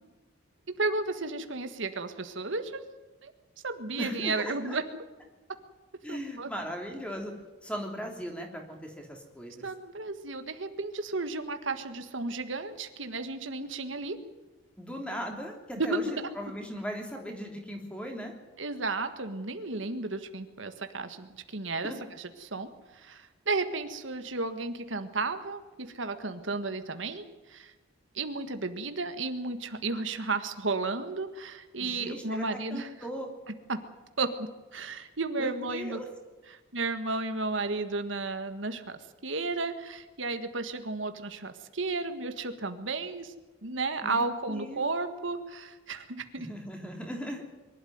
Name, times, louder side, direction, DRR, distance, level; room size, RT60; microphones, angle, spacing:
voice 1, 0.7-2.8 3.2-3.3 3.6-4.8 6.1-6.5 9.6-14.2 15.8-16.0 18.6-27.7 28.1-32.9 33.7-33.8 34.2-36.0 36.7-43.3 43.6-46.5, right 3 dB, 80° right, 8 dB, 1.7 m, -33 dB
voice 2, 4.0-4.8 6.0-7.4 7.6-9.6 14.8-18.3 21.8-22.0 31.8-33.3 35.4-36.1 44.0-44.9 46.4-47.4, equal, 5° left, 2 dB, 3.3 m, -38 dB
23.0 x 12.5 x 9.4 m, 1.2 s
head